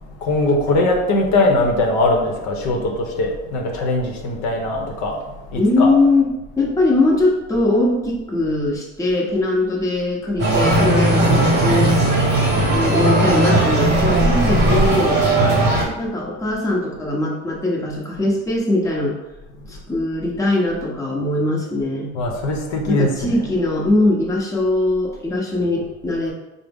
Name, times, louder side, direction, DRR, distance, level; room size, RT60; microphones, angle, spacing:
voice 1, 0.0-5.3 5.5-5.9 14.5-14.9 15.4-16.0 19.6-19.7 22.1-23.5, left 2 dB, 70° left, 1 dB, 0.8 m, -21 dB
voice 2, 5.6-6.3 6.6-11.9 12.7-15.2 15.9-19.2 19.7-22.1 22.9-26.3, left 2 dB, 10° left, -3 dB, 0.7 m, -20 dB
sound 1, 10.4-15.8, right 1 dB, 35° right, 1.0 m, -17 dB
3.8 x 2.0 x 3.5 m, 1.0 s
supercardioid pair, 105°, 31 cm